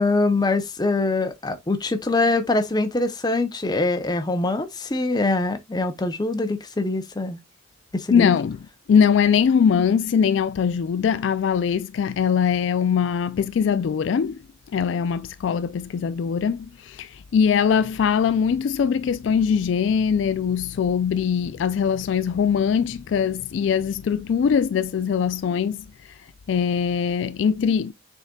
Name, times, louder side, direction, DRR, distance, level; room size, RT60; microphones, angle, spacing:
voice 1, 0.0-7.4 7.9-8.3, left 2 dB, 20° left, 0.6 m, -23 dB
voice 2, 8.1-8.6 8.9-14.4 14.7-25.8 26.5-27.9, left 7 dB, 65° left, 0.3 m, -21 dB
6.3 x 3.6 x 2.2 m
head